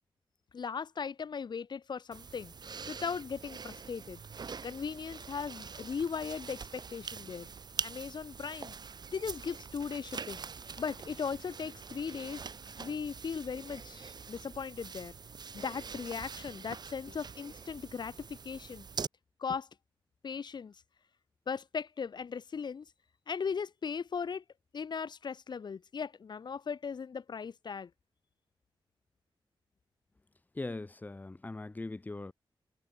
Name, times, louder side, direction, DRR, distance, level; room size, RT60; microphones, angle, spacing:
voice 1, 0.5-2.5 2.9-4.2 4.6-7.5 7.8-8.8 9.1-10.4 10.8-12.4 12.8-15.1 15.5-18.9 19.4-19.7 20.2-20.8 21.5-22.9 23.3-24.4 24.7-27.9, left 6 dB, 55° left, 2.1 m, -38 dB
sound 1, 2.1-19.1, right 5 dB, 50° right, 6.4 m, -44 dB
voice 2, 30.6-32.3, left 2 dB, 20° left, 2.1 m, -40 dB
wide cardioid pair, 160°, 9 cm